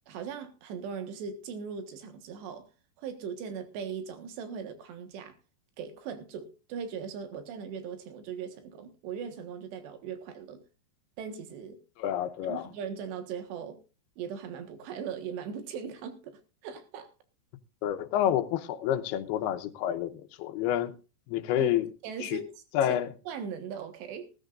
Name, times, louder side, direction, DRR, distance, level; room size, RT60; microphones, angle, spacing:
voice 1, 0.1-2.7 3.0-5.4 5.8-10.6 11.2-11.8 12.5-13.8 14.2-17.1 21.6-21.7 22.0-23.0 23.3-24.3, right 7 dB, 85° right, 3.7 m, -39 dB
voice 2, 12.0-12.7 17.8-20.9 21.3-21.9 22.2-22.4 22.7-23.1, left 11 dB, 80° left, 2.7 m, -28 dB
19.5 x 13.0 x 2.5 m
omnidirectional pair, 4.8 m